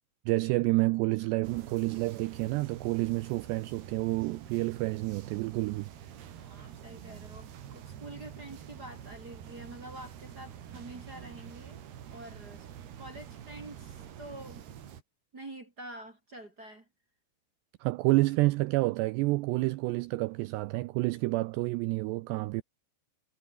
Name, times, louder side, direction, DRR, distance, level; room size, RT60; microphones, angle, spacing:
voice 1, 0.3-5.9 17.8-22.6, right 21 dB, 85° right, 2.4 m, -29 dB
sound 1, 1.4-15.0, right 9 dB, 60° right, 4.3 m, -47 dB
voice 2, 6.4-11.8 12.1-12.7 13.0-14.6 15.3-16.9, right 1 dB, 25° right, 2.6 m, -47 dB
omnidirectional pair, 5.6 m